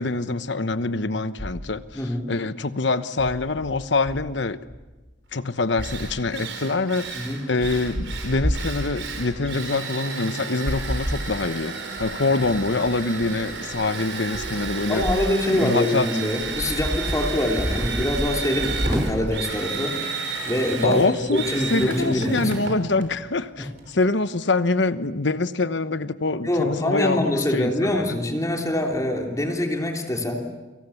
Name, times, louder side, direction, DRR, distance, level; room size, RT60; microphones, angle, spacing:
voice 1, 0.0-1.8 2.3-4.6 5.3-7.1 7.5-11.7 12.0-15.1 15.5-16.1 20.8-28.2, left 3 dB, 70° left, 1.1 m, -25 dB
sound 1, 1.4-1.9 3.2-5.1 5.8-6.4 7.1-7.2 7.6-9.6 10.7-11.3 12.0-15.4 15.8-15.9 16.4-19.6, equal, 5° right, 2.9 m, -30 dB
voice 2, 1.9-2.3 7.1-7.4 14.9-20.0 20.4-22.5 23.6-23.7 26.4-30.4, left 1 dB, 20° left, 3.2 m, -24 dB
Drill, 5.4-5.5 5.8-23.9, right 4 dB, 85° right, 5.3 m, -32 dB
29.0 x 26.5 x 7.2 m
head